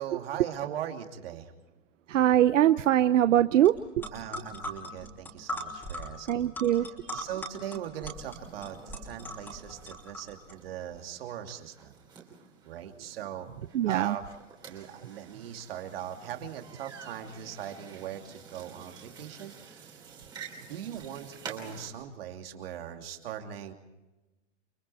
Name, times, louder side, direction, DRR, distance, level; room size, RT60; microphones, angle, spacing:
voice 1, 0.0-1.5 4.1-6.5 6.8-12.0 12.6-13.5 13.9-14.2 14.7-20.0 20.6-23.7, right 10 dB, 50° right, 4 dB, 2.8 m, -40 dB
voice 2, 2.1-3.7 6.3-6.9 13.7-14.1, right 12 dB, 85° right, 12 dB, 0.9 m, -22 dB
sound 1, 3.6-3.7 4.0-10.5, equal, 5° left, 3.1 m, -40 dB
sound 2, 8.1-21.9, right 6 dB, 10° right, 3.3 m, -49 dB
30.0 x 24.0 x 4.3 m, 1.1 s
supercardioid pair, 180°, 37 cm